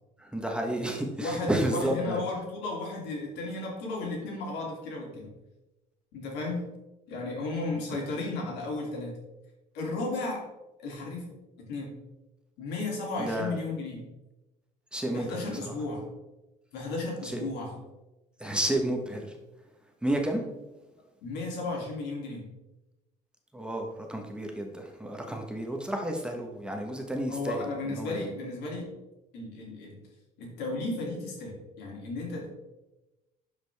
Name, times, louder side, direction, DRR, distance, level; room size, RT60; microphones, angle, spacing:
voice 1, 0.2-2.2 13.2-13.6 14.9-15.7 17.2-17.5 18.4-19.3 20.0-20.4 23.5-27.6 28.0-28.3, right 1 dB, 5° right, 1 dB, 1.3 m, -31 dB
voice 2, 1.2-5.3 6.1-6.6 7.1-9.2 9.7-10.5 10.8-11.3 11.6-12.0 12.6-14.0 15.1-16.1 16.7-17.7 21.2-22.5 27.3-28.9 29.3-30.0 30.4-32.6, left 2 dB, 85° left, -2 dB, 2.8 m, -34 dB
11.5 x 5.1 x 3.5 m, 1.0 s
cardioid pair, 110°, 17 cm